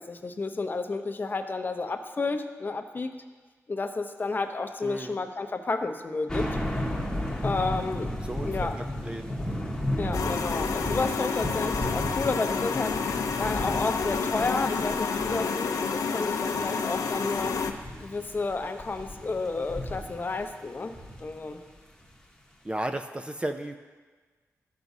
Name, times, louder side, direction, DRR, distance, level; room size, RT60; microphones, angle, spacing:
voice 1, 0.0-3.1 3.7-6.5 7.4-8.1 8.4-8.8 10.0-17.6 18.0-20.9 21.2-21.6, left 3 dB, 35° left, 6 dB, 0.6 m, -31 dB
voice 2, 4.8-5.2 8.2-8.6 9.0-9.4 22.6-23.8, right 1 dB, 20° right, 6 dB, 0.4 m, -34 dB
sound 1, 6.3-21.5 22.0-22.1, left 1 dB, 10° left, 1.1 m, -34 dB
sound 2, 10.1-17.7, left 5 dB, 85° left, 0.5 m, -29 dB
13.5 x 6.0 x 2.7 m, 1.4 s
cardioid pair, 80°, 6 cm